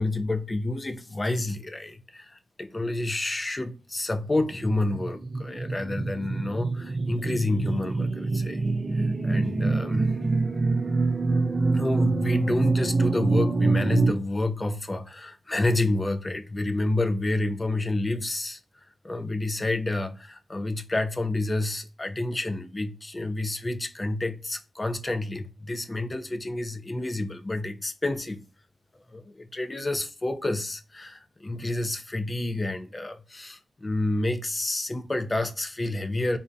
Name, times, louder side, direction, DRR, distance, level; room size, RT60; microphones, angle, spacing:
voice 1, 0.0-8.6 8.9-10.1 11.7-18.6 19.0-28.4 29.1-36.4, left 2 dB, 30° left, 0.4 m, -29 dB
sound 1, 4.3-14.1, right 3 dB, 45° right, 0.5 m, -25 dB
2.6 x 2.1 x 2.4 m
cardioid pair, 60°, 0 cm